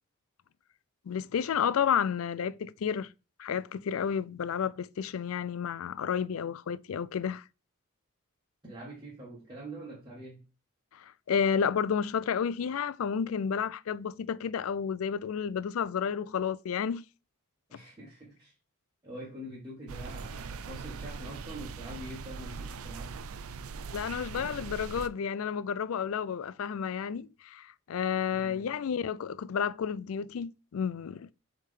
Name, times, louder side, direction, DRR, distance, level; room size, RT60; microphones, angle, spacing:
voice 1, 1.1-3.1 3.4-7.4 10.9-17.0 23.9-31.3, left 7 dB, 75° left, 0.4 m, -31 dB
voice 2, 8.6-10.4 17.7-18.5 19.0-23.2 28.3-28.7, right 1 dB, 20° right, 1.7 m, -45 dB
sound 1, 19.9-25.1, right 5 dB, 80° right, 0.5 m, -41 dB
7.4 x 3.5 x 3.7 m
head